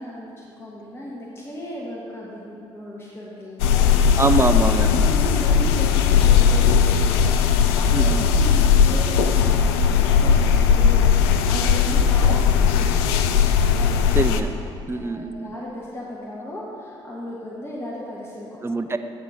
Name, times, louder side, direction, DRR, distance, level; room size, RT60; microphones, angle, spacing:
voice 1, 0.0-4.0 4.9-14.7 14.9-18.8, left 1 dB, 15° left, -5 dB, 1.3 m, -36 dB
sound 1, 3.6-14.4, left 7 dB, 70° left, 0.4 m, -18 dB
voice 2, 4.2-5.0 7.9-8.3 14.1-14.5 14.9-15.5 18.6-19.0, right 3 dB, 20° right, 9 dB, 0.5 m, -23 dB
8.1 x 4.3 x 6.2 m, 2.7 s
figure-of-eight pair, 50°, 14 cm